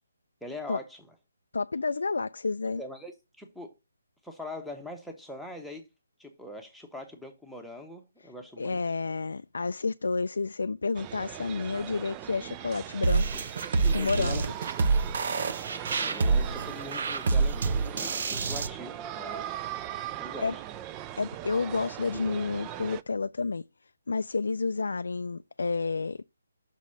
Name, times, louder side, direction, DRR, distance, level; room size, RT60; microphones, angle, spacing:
voice 1, 0.4-1.1 2.7-3.7 4.2-5.8 6.2-8.8 11.7-11.9 13.3-13.4 13.8-14.4 14.7-14.8 16.0-19.6 20.2-20.6, left 2 dB, ahead, 1.0 m, -42 dB
voice 2, 1.5-2.8 8.6-13.2 13.9-14.4 19.9-20.0 20.4-20.5 21.2-23.6 24.1-26.2, left 4 dB, 75° left, 0.3 m, -30 dB
sound 1, 10.9-23.0, right 12 dB, 20° right, 0.3 m, -40 dB
sound 2, 13.0-18.7, right 4 dB, 50° right, 0.8 m, -27 dB
6.1 x 4.1 x 6.3 m
hypercardioid pair, 155°, 0 cm